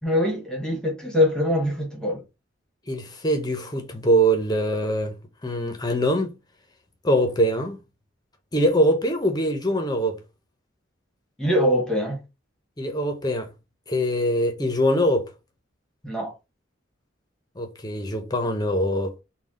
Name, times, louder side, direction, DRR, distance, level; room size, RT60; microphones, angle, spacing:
voice 1, 0.0-2.2 11.4-12.2 16.0-16.4, left 1 dB, 5° left, 1.2 m, -23 dB
voice 2, 2.9-5.2 5.4-6.3 7.0-7.8 8.5-10.2 12.8-13.5 13.9-15.3 17.6-19.2, equal, 20° left, 0.8 m, -23 dB
3.9 x 2.3 x 3.5 m
head